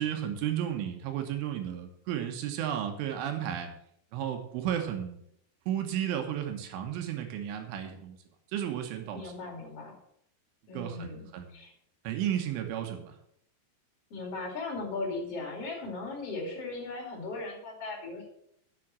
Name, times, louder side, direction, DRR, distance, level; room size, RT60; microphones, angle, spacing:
voice 1, 0.0-3.7 4.1-5.2 5.7-8.2 8.5-9.5 10.7-11.6 12.1-13.1, right 10 dB, 85° right, 4 dB, 3.6 m, -33 dB
voice 2, 9.1-10.0 10.7-11.7 14.1-18.3, left 3 dB, 40° left, 1 dB, 2.8 m, -38 dB
7.6 x 7.2 x 7.4 m, 0.73 s
omnidirectional pair, 5.4 m